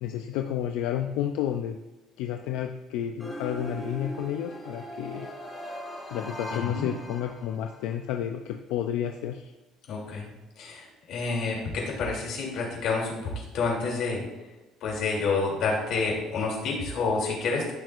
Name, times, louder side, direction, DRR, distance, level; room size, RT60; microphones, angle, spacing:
voice 1, 0.0-1.8 2.2-5.3 6.1-9.5, left 10 dB, 85° left, 4 dB, 0.5 m, -31 dB
sound 1, 3.2-7.8, equal, 10° left, 2.1 m, -39 dB
voice 2, 6.5-6.9 9.9-10.3 10.6-14.2 14.8-17.7, left 4 dB, 60° left, -2 dB, 3.0 m, -29 dB
13.5 x 6.1 x 2.5 m, 1.1 s
cardioid pair, 155°, 0 cm